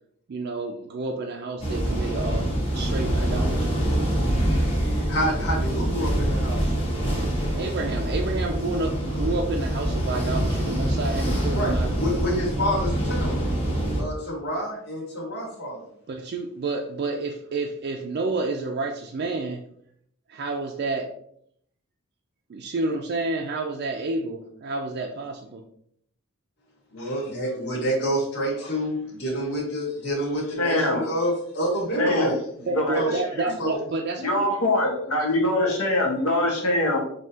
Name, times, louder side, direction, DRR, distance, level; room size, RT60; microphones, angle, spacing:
voice 1, 0.3-2.5 2.7-3.8 7.6-12.2 16.1-19.6 20.3-21.1 22.5-25.6 32.7-34.5, right 3 dB, 50° right, 2 dB, 0.4 m, -29 dB
sound 1, 1.6-14.0, right 1 dB, 25° left, 1.2 m, -25 dB
voice 2, 5.1-6.7 11.5-13.4 14.0-15.9 26.9-32.4 32.9-33.1 33.6-33.8, equal, 50° left, -5 dB, 1.7 m, -28 dB
voice 3, 30.6-31.1 32.0-32.3 32.6-33.0 33.4-33.5 34.2-37.0, left 1 dB, 80° left, 0 dB, 1.2 m, -23 dB
5.5 x 2.8 x 2.7 m, 0.69 s
head